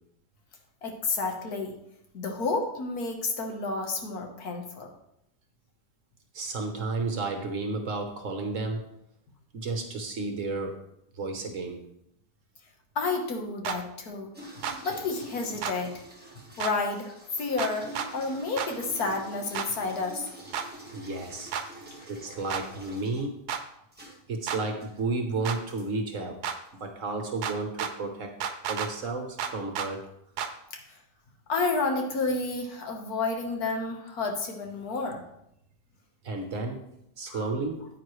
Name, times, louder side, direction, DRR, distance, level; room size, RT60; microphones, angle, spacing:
voice 1, 0.8-1.7 2.1-4.9 12.9-14.3 14.8-15.9 16.6-20.3 30.7-31.0 31.5-35.2 37.3-37.5, left 3 dB, 65° left, 3 dB, 1.7 m, -30 dB
voice 2, 6.3-8.9 9.5-10.8 11.1-11.8 20.9-21.5 22.1-23.4 24.3-26.4 26.8-28.4 28.6-30.1 36.2-36.8 37.2-37.9, right 3 dB, 55° right, 5 dB, 1.2 m, -32 dB
sound 1, 13.6-13.8 14.6-14.8 15.6-15.8 16.6-16.7 17.6-18.1 18.6-18.7 19.5-19.7 20.5-20.7 21.5-21.7 22.5-22.6 23.5-23.6 24.5-24.6 25.4-25.6 26.4-26.6 27.4-27.9 28.4-28.9 29.4-29.9 30.4-30.5, right 7 dB, 75° right, 1.2 m, -31 dB
sound 2, 14.3-23.3 23.9-24.2 24.8-25.0 25.7-25.9 26.7-26.8, right 1 dB, 5° right, 1.4 m, -47 dB
9.3 x 9.0 x 3.1 m, 0.79 s
omnidirectional pair, 1.8 m